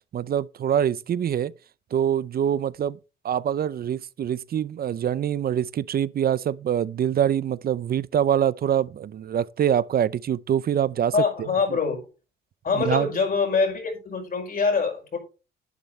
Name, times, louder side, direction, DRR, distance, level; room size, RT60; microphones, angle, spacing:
voice 1, 0.1-1.5 1.9-3.0 3.2-11.1 11.4-11.5 12.7-13.1, right 9 dB, 50° right, 0.6 m, -24 dB
voice 2, 11.1-12.0 12.6-15.2, left 5 dB, 45° left, 5.4 m, -24 dB
11.5 x 9.3 x 3.2 m
cardioid pair, 90°, 20 cm